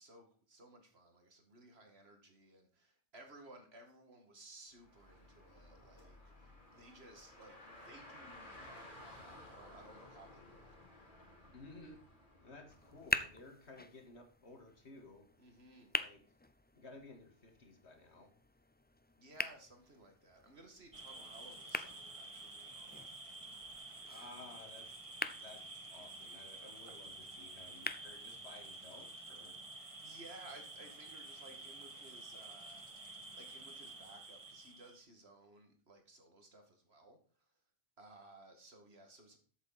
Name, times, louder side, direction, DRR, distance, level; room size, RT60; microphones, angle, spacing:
voice 1, 0.0-10.8 15.4-16.0 19.2-23.1 30.0-32.9 33.4-37.5 38.0-39.4, right 2 dB, 70° right, 4 dB, 2.5 m, -58 dB
Car, 4.7-13.3, left 1 dB, 50° left, 3.2 m, -56 dB
voice 2, 11.5-12.0 12.4-15.3 15.9-16.2 16.8-18.3 24.1-25.0 25.3-29.6, left 2 dB, 80° left, 4 dB, 2.3 m, -56 dB
sound 1, 12.7-28.7, left 2 dB, 15° left, 0.3 m, -45 dB
sound 2, 20.9-35.0, right 2 dB, 30° right, 1.5 m, -50 dB
13.5 x 7.9 x 4.2 m, 0.43 s
omnidirectional pair, 1.1 m